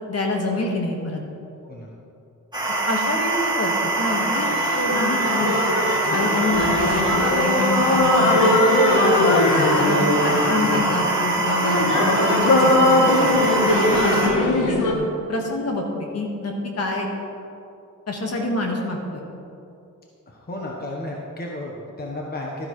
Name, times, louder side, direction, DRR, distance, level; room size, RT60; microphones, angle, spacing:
voice 1, 0.1-1.2 2.9-5.6 6.1-8.8 9.1-9.4 9.8-13.5 13.9-15.8 16.1-17.1 18.1-19.2, left 2 dB, 50° left, 0 dB, 1.6 m, -27 dB
sound 1, 2.5-14.3, right 2 dB, 15° right, 2.3 m, -23 dB
sound 2, 3.9-14.9, left 2 dB, 75° left, 1.3 m, -21 dB
voice 2, 20.3-22.7, left 1 dB, 30° left, -2 dB, 1.1 m, -33 dB
12.5 x 9.9 x 3.2 m, 2.6 s
wide cardioid pair, 130°, 31 cm